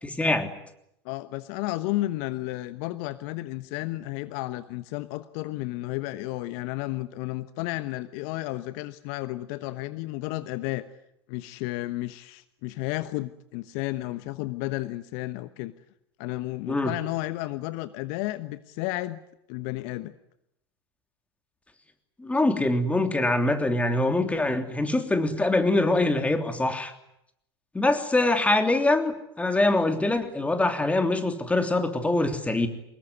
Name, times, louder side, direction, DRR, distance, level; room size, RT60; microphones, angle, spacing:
voice 1, 0.0-0.5 16.7-16.9 22.2-26.9 27.7-32.7, left 2 dB, 10° left, 7 dB, 3.2 m, -24 dB
voice 2, 1.0-10.9 11.3-15.7 16.2-19.2 19.5-20.1, left 18 dB, 55° left, 13 dB, 1.1 m, -32 dB
24.5 x 21.0 x 9.7 m, 0.80 s
figure-of-eight pair, 85°, 14 cm